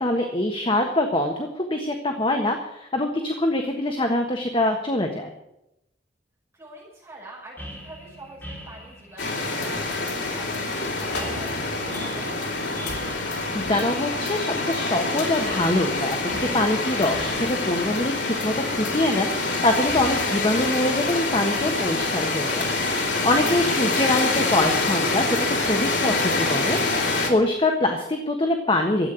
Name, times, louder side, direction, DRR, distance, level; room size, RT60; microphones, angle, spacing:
voice 1, 0.0-5.3 13.5-22.6 23.0-29.1, left 1 dB, 30° left, 3 dB, 1.4 m, -24 dB
voice 2, 6.5-12.3, right 1 dB, 15° right, -4 dB, 5.8 m, -44 dB
sound 1, 7.6-24.8, equal, 10° left, 4.0 m, -44 dB
sound 2, 9.2-27.3, left 3 dB, 75° left, 3.3 m, -26 dB
13.5 x 8.7 x 10.0 m, 0.86 s
head